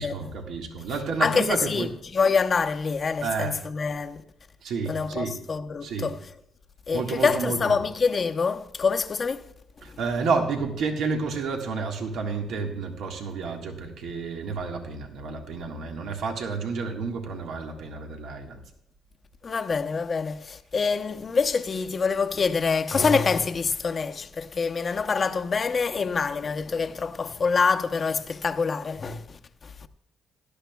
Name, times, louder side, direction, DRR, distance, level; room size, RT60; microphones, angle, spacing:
voice 1, 0.0-1.9 3.2-3.6 4.6-5.4 5.8-6.1 6.9-7.8 9.8-18.6, right 4 dB, 75° right, 1.6 m, -30 dB
voice 2, 1.2-4.2 4.9-6.2 6.9-9.4 19.4-29.9, left 5 dB, 40° left, 0.8 m, -26 dB
17.0 x 12.0 x 2.3 m
cardioid pair, 90°, 0 cm